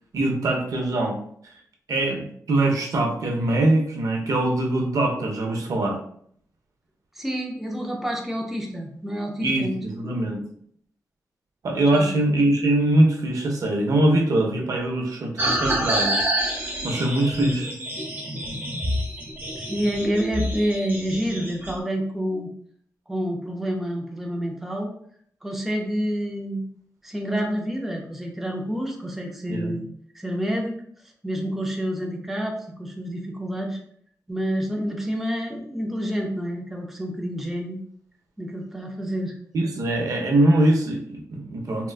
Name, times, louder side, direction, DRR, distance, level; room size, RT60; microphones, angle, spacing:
voice 1, 0.1-1.2 1.9-6.0 9.4-10.4 11.6-17.7 29.5-29.8 39.5-41.9, right 1 dB, 70° right, 1 dB, 0.6 m, -22 dB
voice 2, 7.2-10.2 11.9-12.2 19.6-22.5 23.1-24.9 25.4-26.6 27.0-29.9 30.1-30.8 31.2-33.8 34.3-37.8 38.4-39.3, equal, 5° right, 0 dB, 0.4 m, -28 dB
sound 1, 15.4-21.7, right 1 dB, 30° right, 0.8 m, -27 dB
3.6 x 2.2 x 2.3 m, 0.64 s
wide cardioid pair, 155°, 6 cm